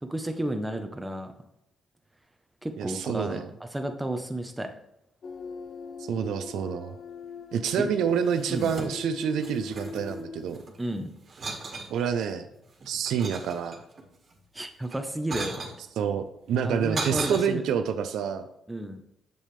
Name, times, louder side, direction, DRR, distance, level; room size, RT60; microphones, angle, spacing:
voice 1, 0.0-1.3 2.6-3.4 3.7-4.7 7.8-7.9 8.5-8.7 10.8-11.1 14.5-15.5 16.6-17.6 18.7-19.0, right 1 dB, 10° right, 6 dB, 0.9 m, -32 dB
voice 2, 2.8-3.5 6.1-6.9 7.5-10.6 11.9-12.5 12.9-13.8 16.0-18.5, right 7 dB, 80° right, 9 dB, 0.6 m, -28 dB
sound 1, 5.2-10.4, left 4 dB, 50° left, 0.6 m, -40 dB
sound 2, 8.2-9.2 9.4-10.8 11.3-11.9 12.5-14.0 14.8-15.8 16.5-17.4, right 3 dB, 45° right, 1.8 m, -36 dB
7.3 x 7.0 x 3.4 m, 0.81 s
cardioid pair, 90°, 0 cm